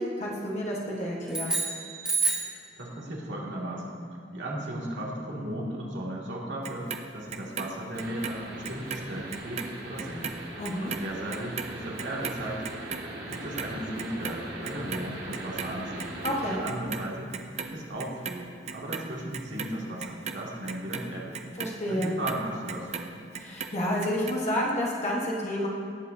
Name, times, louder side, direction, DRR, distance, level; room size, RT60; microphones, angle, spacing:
voice 1, 0.0-1.6 10.6-10.9 16.2-16.6 21.6-22.1 23.3-25.7, equal, 40° left, -4 dB, 1.3 m, -30 dB
sound 1, 1.3-2.6, right 3 dB, 5° right, 1.6 m, -28 dB
voice 2, 2.8-4.0 4.3-6.9 7.1-10.3 10.8-12.6 13.3-16.1 16.5-17.3 17.6-18.4 18.7-21.4 21.9-23.0, right 1 dB, 85° right, -4 dB, 2.2 m, -36 dB
Clock, 6.6-9.0 9.3-15.7 16.0-17.0 17.3-18.3 18.7-23.1 23.3-24.3 24.7-24.8, right 6 dB, 35° right, 0.6 m, -37 dB
sound 2, 7.9-16.6, right 1 dB, 60° right, 1.8 m, -40 dB
19.0 x 7.6 x 2.7 m, 2.2 s
head